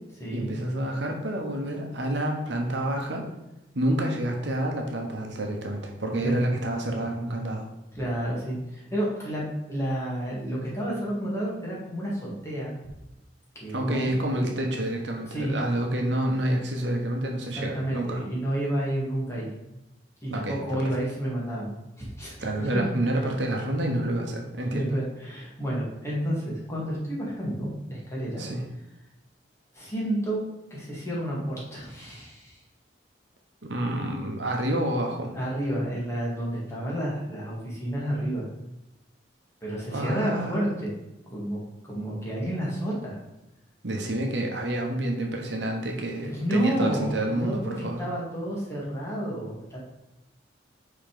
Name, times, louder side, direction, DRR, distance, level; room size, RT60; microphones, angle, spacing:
voice 1, 0.3-3.3 3.7-7.7 13.7-18.2 20.3-20.9 22.4-25.0 28.4-28.6 33.6-35.3 39.9-40.6 43.8-48.0, right 1 dB, 70° right, 1 dB, 1.1 m, -28 dB
voice 2, 7.9-12.7 13.6-14.5 15.3-15.6 17.6-19.5 20.2-21.7 22.0-22.8 24.7-28.4 29.7-30.4 30.7-32.6 35.3-38.5 39.6-40.9 41.2-43.2 46.2-49.8, right 1 dB, 15° left, -5 dB, 2.1 m, -30 dB
5.7 x 3.9 x 5.1 m, 0.93 s
head